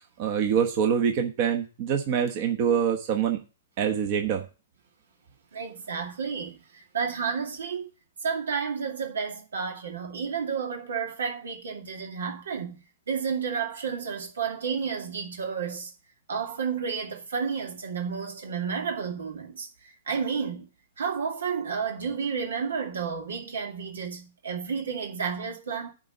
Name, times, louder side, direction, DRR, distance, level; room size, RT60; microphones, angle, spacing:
voice 1, 0.2-3.4 3.8-4.4, right 8 dB, 40° right, 1.1 m, -25 dB
voice 2, 5.5-6.6 6.9-7.9 8.2-12.8 13.1-15.9 16.3-19.7 20.1-20.7 21.0-25.9, right 6 dB, 85° right, 2.3 m, -31 dB
10.5 x 4.0 x 6.6 m
hypercardioid pair, 150°, 0 cm